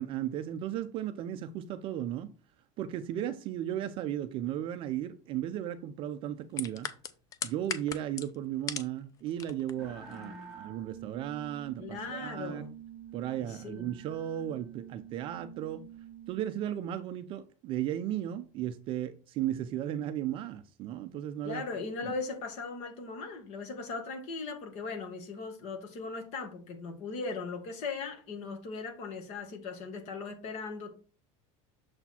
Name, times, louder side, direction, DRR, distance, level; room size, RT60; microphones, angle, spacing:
voice 1, 0.0-2.3 2.8-6.9 7.4-12.6 13.1-15.9 16.3-21.6 22.0-22.1, right 11 dB, 30° right, 0.4 m, -35 dB
sound 1, 6.5-9.0 9.3-9.7 10.1-10.2, left 7 dB, 20° left, 0.5 m, -37 dB
sound 2, 9.8-16.4, right 8 dB, ahead, 2.0 m, -47 dB
voice 2, 11.8-12.7 13.4-13.9 21.4-30.9, left 4 dB, 45° left, 1.8 m, -38 dB
6.9 x 4.3 x 4.2 m
cardioid pair, 175°, 17 cm